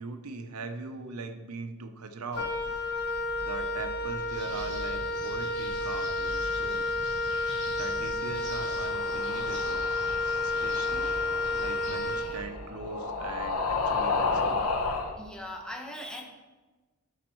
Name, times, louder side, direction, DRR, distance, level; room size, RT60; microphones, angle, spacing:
voice 1, 0.0-2.5 3.4-7.2 7.7-9.9 10.4-11.2 11.5-14.7, right 3 dB, 75° right, 7 dB, 0.7 m, -41 dB
Wind instrument woodwind instrument, 2.3-12.8, left 2 dB, 45° left, 1.0 m, -31 dB
sound 1, 4.3-12.4, right 1 dB, 55° right, 2.9 m, -45 dB
sound 2, 8.4-15.1, left 4 dB, 85° left, 0.9 m, -32 dB
voice 2, 15.2-16.2, left 1 dB, 5° left, 1 dB, 1.1 m, -39 dB
10.5 x 4.2 x 4.5 m, 1.2 s
head